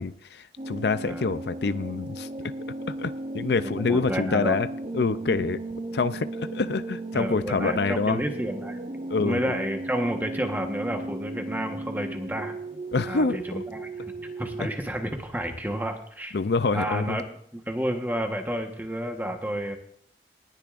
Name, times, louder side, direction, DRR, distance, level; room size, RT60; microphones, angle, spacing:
voice 1, 0.0-2.3 3.0-4.7 4.9-5.6 5.9-8.2 9.1-9.6 12.9-13.6 14.6-14.7 16.3-17.2, left 4 dB, 70° left, 13 dB, 0.5 m, -26 dB
sound 1, 0.6-14.6, right 2 dB, 35° right, 0.6 m, -36 dB
voice 2, 3.6-4.6 7.1-8.8 9.2-12.5 13.0-14.1 14.4-16.4 16.7-17.2 17.5-19.8, right 1 dB, 10° right, 4 dB, 1.2 m, -30 dB
19.5 x 10.5 x 2.5 m, 0.63 s
head